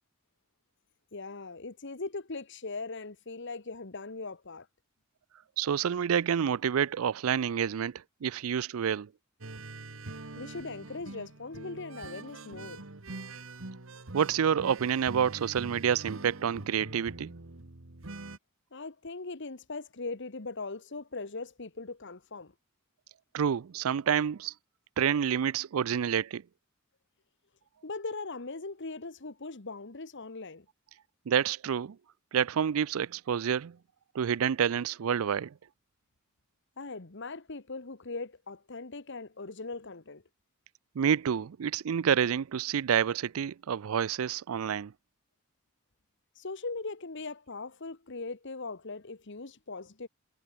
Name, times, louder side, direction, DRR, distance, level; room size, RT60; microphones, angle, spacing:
voice 1, 1.1-4.7 10.3-12.8 18.7-22.5 27.8-30.6 36.8-40.2 46.4-50.1, left 3 dB, 60° left, 1.4 m, -40 dB
voice 2, 5.6-9.1 14.1-17.3 23.3-24.5 25.0-26.4 31.3-32.0 32.3-33.8 34.1-35.5 41.0-44.9, right 8 dB, 90° right, 0.4 m, -28 dB
sound 1, 9.4-18.4, right 2 dB, 70° right, 1.7 m, -44 dB
head